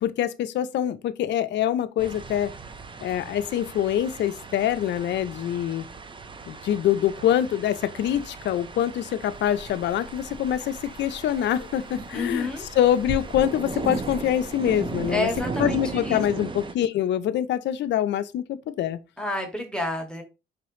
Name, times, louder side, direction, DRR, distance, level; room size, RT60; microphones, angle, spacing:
voice 1, 0.0-2.5 3.0-5.9 6.5-12.5 12.8-15.3 15.6-19.0, left 11 dB, 65° left, 0.4 m, -25 dB
sound 1, 2.0-16.7, right 4 dB, 25° right, 0.5 m, -37 dB
sound 2, 9.3-15.4, equal, 50° right, 1.1 m, -41 dB
voice 2, 12.1-12.6 15.1-16.4 19.2-20.2, left 2 dB, 5° left, 1.1 m, -29 dB
4.8 x 2.9 x 3.1 m
cardioid pair, 90°, 20 cm